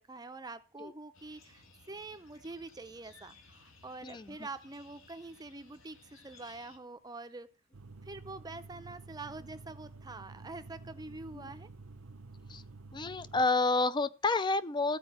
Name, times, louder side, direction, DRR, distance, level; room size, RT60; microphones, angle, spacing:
voice 1, 0.0-7.5 8.0-11.7, right 3 dB, 20° right, 0.6 m, -46 dB
sound 1, 1.1-6.8, left 3 dB, 65° left, 2.1 m, -59 dB
voice 2, 4.0-4.4 11.3-11.5 12.5-12.6 12.9-15.0, left 3 dB, 20° left, 0.5 m, -29 dB
sound 2, 7.7-13.5, right 3 dB, 75° right, 0.8 m, -50 dB
14.5 x 5.0 x 8.6 m
head